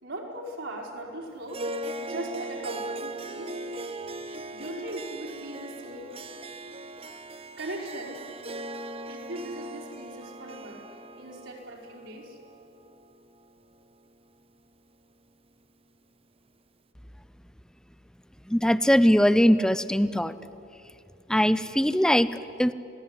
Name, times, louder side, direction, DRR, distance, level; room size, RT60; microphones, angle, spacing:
voice 1, 0.0-1.6 2.0-3.6 4.5-6.2 7.6-8.2 9.1-10.8 11.1-12.4, right 1 dB, 70° right, -2 dB, 4.8 m, -39 dB
Harp, 1.5-14.0, right 2 dB, 30° right, 1.0 m, -39 dB
voice 2, 18.5-20.3 21.3-22.7, equal, 5° left, 14 dB, 0.7 m, -21 dB
28.0 x 18.5 x 9.7 m, 2.6 s
head